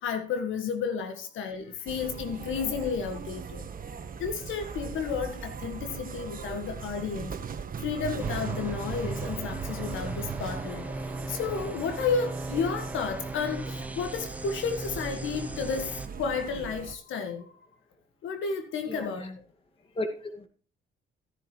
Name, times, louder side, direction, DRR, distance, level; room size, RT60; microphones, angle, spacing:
voice 1, 0.0-3.7 4.2-7.4 7.8-10.9 11.3-17.5 18.2-19.3, left 5 dB, 80° left, 1.8 m, -32 dB
sound 1, 1.9-16.9, right 6 dB, 45° right, 1.3 m, -39 dB
sound 2, 8.2-16.1, right 1 dB, 5° right, 1.1 m, -38 dB
voice 2, 18.8-19.4 19.9-20.5, left 1 dB, 30° left, 2.1 m, -35 dB
14.0 x 10.5 x 3.2 m
cardioid pair, 90°, 20 cm